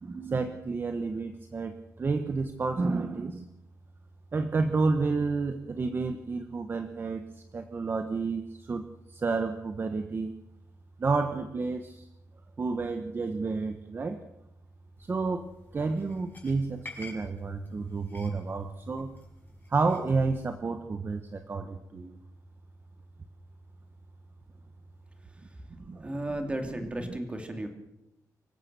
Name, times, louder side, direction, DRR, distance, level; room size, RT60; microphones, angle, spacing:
voice 1, 0.0-3.5 4.3-10.3 11.0-12.1 12.6-14.2 15.0-19.1 19.7-22.2 25.8-26.2, right 4 dB, 35° right, 7 dB, 1.2 m, -30 dB
sound 1, 15.0-20.2, left 2 dB, 30° left, 5.9 m, -50 dB
voice 2, 26.0-27.7, right 1 dB, 20° right, 5 dB, 2.8 m, -34 dB
25.5 x 15.5 x 6.8 m, 0.87 s
wide cardioid pair, 150°, 6 cm